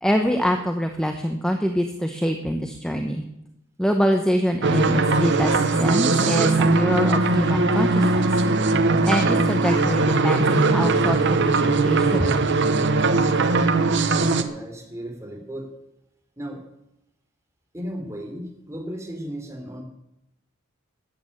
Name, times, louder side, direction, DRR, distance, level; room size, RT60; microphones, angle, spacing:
voice 1, 0.0-3.2 3.8-8.3 9.1-12.3, equal, 5° left, 5 dB, 0.9 m, -24 dB
sound 1, 4.6-14.4, right 3 dB, 60° right, 1.1 m, -20 dB
voice 2, 14.2-15.7 16.4-16.6 17.7-19.8, equal, 15° right, 1 dB, 3.4 m, -35 dB
13.5 x 8.9 x 8.7 m, 0.85 s
head